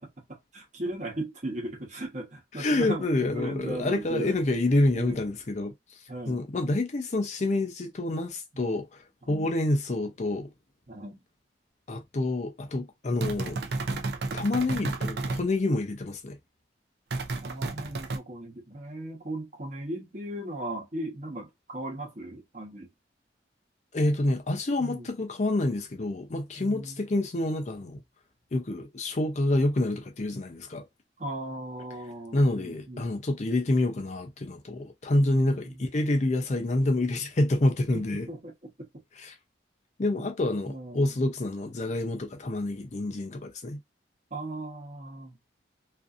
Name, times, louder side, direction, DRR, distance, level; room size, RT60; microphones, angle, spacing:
voice 1, 0.2-4.4 4.9-5.2 6.1-6.4 8.5-8.8 9.2-9.5 10.9-11.2 17.4-22.9 24.8-25.1 26.6-27.0 31.2-33.1 35.2-35.9 37.9-38.9 40.1-40.2 40.7-41.2 44.3-45.4, right 1 dB, 40° right, 1.0 m, -37 dB
voice 2, 2.6-5.7 6.3-10.5 11.9-13.6 13.9-14.0 14.3-16.4 23.9-28.0 28.5-30.9 32.3-38.3 39.2-39.3 40.0-43.8, left 2 dB, 40° left, 0.5 m, -27 dB
sound 1, 13.2-15.4 17.1-18.2, right 3 dB, 60° right, 0.5 m, -31 dB
2.6 x 2.5 x 2.4 m
head